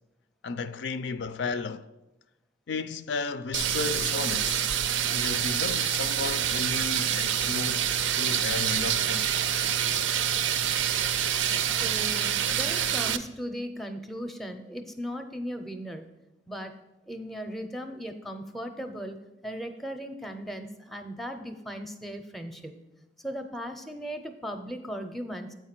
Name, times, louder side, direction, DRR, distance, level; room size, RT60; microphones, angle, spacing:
voice 1, 0.4-1.9 2.7-4.7 5.1-7.9 8.1-9.3, left 4 dB, 70° left, 0.4 m, -33 dB
sound 1, 3.5-13.2, right 9 dB, 85° right, 0.5 m, -27 dB
voice 2, 11.7-16.1 16.5-16.7 17.1-19.2 19.4-22.8 23.2-25.5, equal, ahead, 0.5 m, -37 dB
8.5 x 4.6 x 5.8 m
head